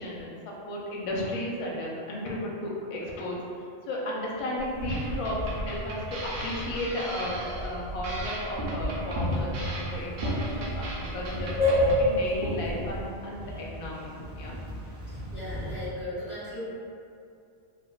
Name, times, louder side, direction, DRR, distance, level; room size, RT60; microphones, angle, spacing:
voice 1, 0.0-14.5, left 1 dB, 55° left, -4 dB, 0.4 m, -34 dB
sound 1, 4.6-6.9 7.2-13.1, left 1 dB, 55° right, 0.7 m, -29 dB
sound 2, 4.9-12.1, right 1 dB, 80° right, 0.9 m, -39 dB
sound 3, 9.8-15.9, equal, 20° right, 0.4 m, -42 dB
voice 2, 15.3-16.6, left 1 dB, 75° left, -15 dB, 1.3 m, -37 dB
3.4 x 2.1 x 2.3 m, 2.4 s
omnidirectional pair, 1.1 m